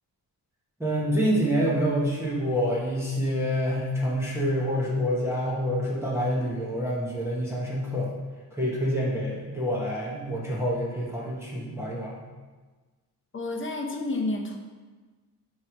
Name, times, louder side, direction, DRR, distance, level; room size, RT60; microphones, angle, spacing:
voice 1, 0.8-8.1 8.5-12.2, equal, 5° right, -6 dB, 1.0 m, -27 dB
voice 2, 13.3-14.6, left 2 dB, 30° left, 2 dB, 0.8 m, -30 dB
9.2 x 3.2 x 5.0 m, 1.3 s
cardioid pair, 160°, 41 cm